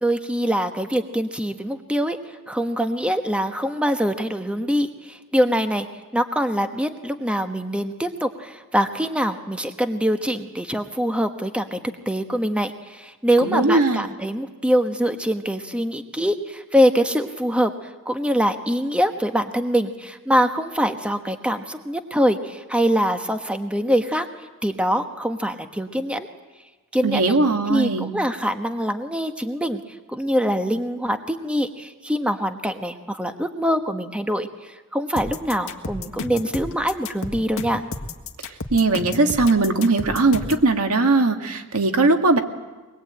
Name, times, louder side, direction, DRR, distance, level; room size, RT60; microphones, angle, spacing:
voice 1, 0.0-2.2 2.5-5.9 6.1-11.8 12.1-17.7 18.1-24.3 24.6-26.3 26.9-27.4 27.7-29.8 30.1-37.8, equal, 5° right, 7 dB, 1.1 m, -24 dB
voice 2, 13.4-14.0 27.0-28.1 38.7-42.4, right 3 dB, 75° right, 5 dB, 2.0 m, -19 dB
sound 1, 35.2-40.7, left 3 dB, 65° left, 1.6 m, -32 dB
23.5 x 21.0 x 8.8 m, 1.2 s
head